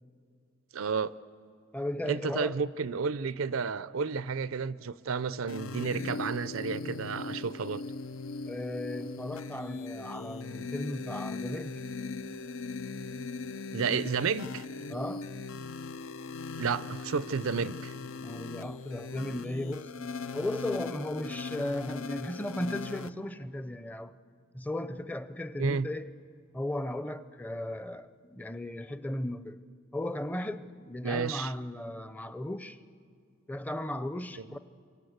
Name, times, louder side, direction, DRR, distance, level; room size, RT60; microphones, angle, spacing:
voice 1, 0.7-1.1 2.1-7.8 13.7-14.6 16.6-17.9 25.6-25.9 31.0-31.5 34.4-34.5, right 5 dB, 80° right, 0.6 m, -31 dB
voice 2, 1.7-2.5 8.5-11.8 14.9-15.2 18.2-19.9 20.3-24.1 24.5-26.1 26.5-29.6 29.9-32.8 33.5-34.6, left 1 dB, 10° left, 0.6 m, -36 dB
sound 1, 5.5-23.1, left 4 dB, 75° left, 0.7 m, -39 dB
27.5 x 24.0 x 8.0 m
head